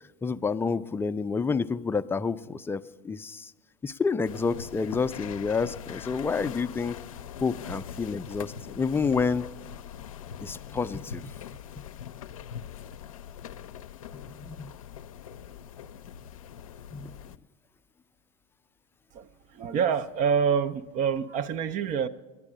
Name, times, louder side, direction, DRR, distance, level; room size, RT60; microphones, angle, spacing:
voice 1, 0.2-3.5 3.8-7.0 7.4-9.5 10.4-11.3 14.3-14.7 16.9-17.1, left 5 dB, 15° left, 0.4 m, -29 dB
sound 1, 4.2-17.4, left 9 dB, 85° left, 0.4 m, -42 dB
voice 2, 19.1-22.1, right 7 dB, 45° right, 0.6 m, -27 dB
11.0 x 9.7 x 8.6 m
hypercardioid pair, 90°, 17 cm